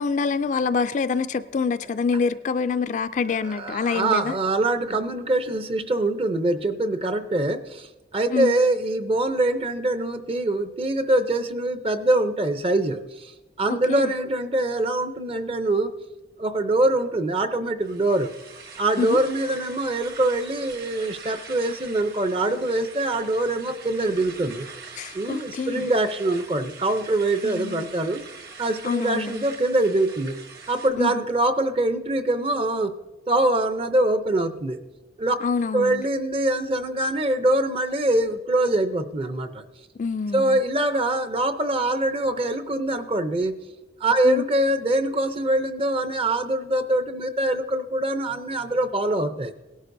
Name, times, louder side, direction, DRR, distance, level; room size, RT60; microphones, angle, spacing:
voice 1, 0.0-4.3 8.3-8.5 13.7-14.1 19.0-19.2 25.0-25.9 27.4-27.8 28.8-29.4 31.0-31.2 35.4-36.0 40.0-40.6 44.2-44.4, left 5 dB, 40° left, 11 dB, 0.3 m, -26 dB
voice 2, 3.4-13.3 13.6-15.9 16.4-18.3 18.8-24.7 25.1-28.2 28.6-30.4 30.7-32.9 33.3-34.8 35.2-35.4 35.7-39.6 40.3-43.6 44.0-49.5, right 1 dB, 30° right, 10 dB, 0.6 m, -24 dB
sound 1, 17.8-30.9, right 5 dB, 55° right, 1.4 m, -43 dB
18.0 x 11.0 x 2.6 m, 1.1 s
head